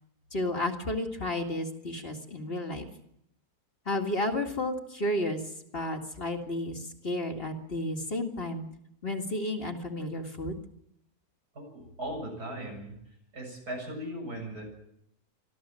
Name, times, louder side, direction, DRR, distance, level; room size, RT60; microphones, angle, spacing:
voice 1, 0.3-2.9 3.9-5.4 5.7-8.7 9.0-10.6, left 1 dB, 40° left, 3 dB, 2.2 m, -32 dB
voice 2, 11.5-12.9 13.3-14.6, right 1 dB, 90° right, 1 dB, 7.6 m, -38 dB
25.0 x 14.0 x 7.6 m, 0.76 s
omnidirectional pair, 1.6 m